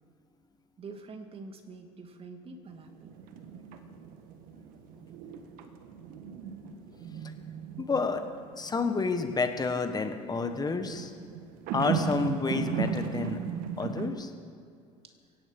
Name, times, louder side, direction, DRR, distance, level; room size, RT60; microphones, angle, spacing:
voice 1, 0.8-3.1 10.4-10.5 15.0-15.2, right 3 dB, 40° right, 5 dB, 2.3 m, -46 dB
sound 1, 2.7-14.1, right 6 dB, 70° right, 1.6 m, -37 dB
voice 2, 7.8-8.2 8.6-11.1 11.7-13.4 13.8-14.3, left 4 dB, 25° left, 7 dB, 1.5 m, -30 dB
17.5 x 15.5 x 5.5 m, 2.2 s
supercardioid pair, 80°, 15 cm